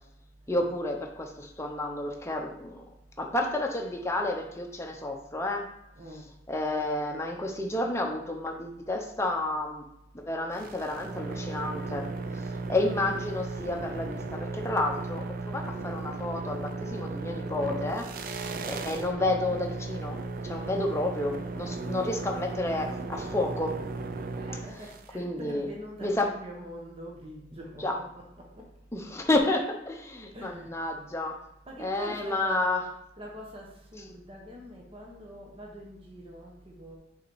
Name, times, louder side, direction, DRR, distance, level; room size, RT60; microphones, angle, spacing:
voice 1, 0.5-2.8 3.2-5.7 6.5-9.8 10.1-12.1 12.3-23.8 25.1-25.7 26.0-26.3 27.8-28.0 28.9-31.4 31.8-32.8, left 2 dB, 15° left, 2 dB, 0.7 m, -30 dB
voice 2, 5.9-6.3 18.4-18.7 24.4-28.7 30.3-30.7 31.3-32.7 33.2-37.0, equal, 30° right, -1 dB, 1.1 m, -44 dB
sound 1, 10.5-25.1, right 3 dB, 50° right, 0.4 m, -36 dB
5.6 x 4.1 x 4.8 m, 0.83 s
head